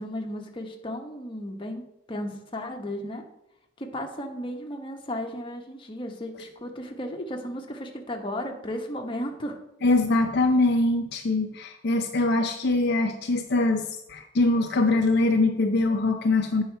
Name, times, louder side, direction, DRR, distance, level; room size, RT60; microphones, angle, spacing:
voice 1, 0.0-3.2 3.8-9.6 9.8-10.0, equal, 25° left, 2 dB, 1.0 m, -34 dB
voice 2, 9.8-16.6, left 2 dB, 60° left, 4 dB, 0.6 m, -23 dB
8.5 x 5.6 x 4.5 m, 0.84 s
head